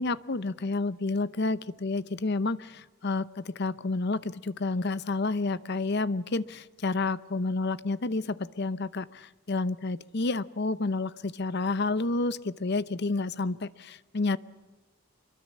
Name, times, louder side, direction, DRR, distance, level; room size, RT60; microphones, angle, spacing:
voice 1, 0.0-14.4, left 3 dB, 50° left, 16 dB, 0.7 m, -30 dB
25.0 x 23.0 x 7.4 m, 1.2 s
head